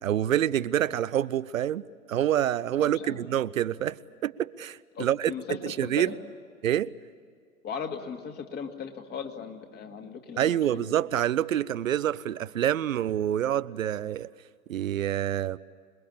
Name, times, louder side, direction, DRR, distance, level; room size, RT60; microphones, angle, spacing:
voice 1, 0.0-1.8 2.1-6.1 6.6-6.9 10.4-14.3 14.7-15.6, right 11 dB, 65° right, 0.7 m, -27 dB
voice 2, 2.8-3.3 4.9-6.2 7.6-10.9, left 6 dB, 25° left, 2.2 m, -38 dB
27.0 x 21.0 x 8.4 m
figure-of-eight pair, 110°, 43 cm